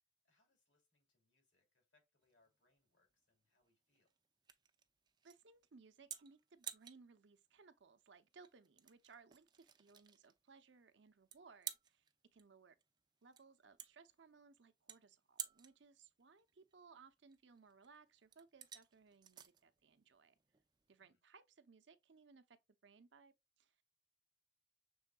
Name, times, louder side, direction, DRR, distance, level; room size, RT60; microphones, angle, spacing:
voice 1, 0.2-4.1 21.0-21.2, left 2 dB, 80° left, 3.0 m, -80 dB
sound 1, 2.2-21.0, right 9 dB, 25° right, 0.4 m, -55 dB
voice 2, 5.2-12.7 13.2-20.3 20.9-22.6 22.8-23.3 23.6-23.8, right 4 dB, 70° right, 0.7 m, -64 dB
6.2 x 3.7 x 2.2 m
head